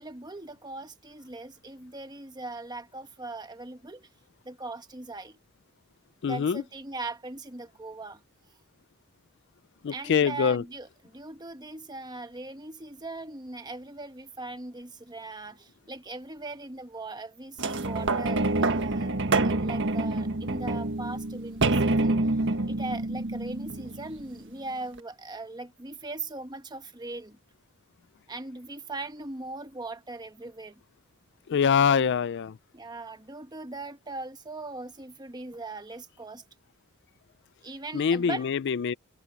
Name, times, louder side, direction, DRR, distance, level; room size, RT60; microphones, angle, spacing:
voice 1, 0.0-4.1 4.4-5.4 6.2-8.2 9.9-19.1 19.4-22.4 22.7-27.4 28.3-30.8 31.6-32.1 32.7-36.4 37.6-38.5, right 2 dB, 20° right, 1.4 m, -40 dB
voice 2, 6.2-6.6 9.8-10.6 31.5-32.6 37.9-38.9, left 6 dB, 55° left, 0.4 m, -24 dB
sound 1, 17.6-24.4 25.0-25.1, right 2 dB, 55° right, 1.5 m, -27 dB
head